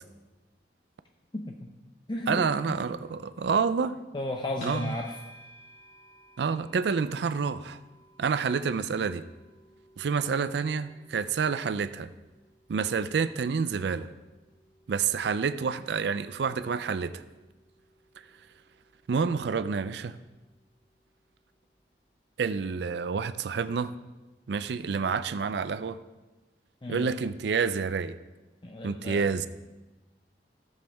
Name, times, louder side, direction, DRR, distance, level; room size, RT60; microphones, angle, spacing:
voice 1, 1.3-1.7 2.1-2.8 4.1-5.1 26.8-27.1 28.6-29.5, left 1 dB, 25° left, 2 dB, 0.5 m, -34 dB
voice 2, 2.3-4.0 4.6-4.9 6.4-7.8 8.2-9.2 10.0-12.1 12.7-14.1 14.9-17.2 19.1-20.2 22.4-23.9 24.5-26.0 26.9-28.2 28.8-29.5, right 5 dB, 70° right, 13 dB, 0.4 m, -28 dB
sound 1, 4.6-21.8, equal, 85° left, 3.2 m, -56 dB
13.5 x 7.3 x 3.4 m, 1.1 s
head